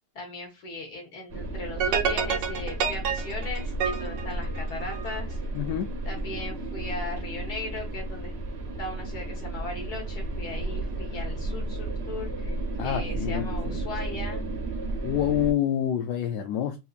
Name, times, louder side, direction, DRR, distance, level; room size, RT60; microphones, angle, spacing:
voice 1, 0.1-5.4 6.1-8.3 8.8-14.4, left 2 dB, 60° left, 2.0 m, -38 dB
sound 1, 1.3-15.5, right 2 dB, 50° right, 0.8 m, -33 dB
sound 2, 1.8-5.2, right 7 dB, 80° right, 1.3 m, -28 dB
voice 2, 5.5-5.9 12.8-13.8 15.0-16.8, left 10 dB, 75° left, 1.1 m, -27 dB
4.0 x 2.8 x 2.4 m
omnidirectional pair, 1.9 m